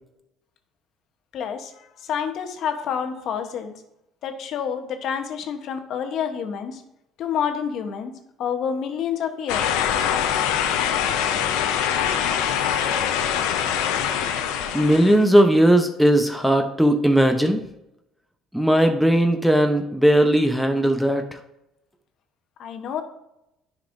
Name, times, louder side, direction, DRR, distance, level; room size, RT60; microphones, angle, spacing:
voice 1, 1.3-3.8 4.2-6.8 7.2-8.1 8.4-9.8 22.6-23.0, left 7 dB, 65° left, 6 dB, 1.0 m, -28 dB
sound 1, 9.5-15.2, left 9 dB, 85° left, 0.7 m, -23 dB
voice 2, 14.7-17.6 18.5-21.4, right 1 dB, 5° right, 5 dB, 0.8 m, -18 dB
10.0 x 5.3 x 2.7 m, 0.87 s
supercardioid pair, 80°, 0 cm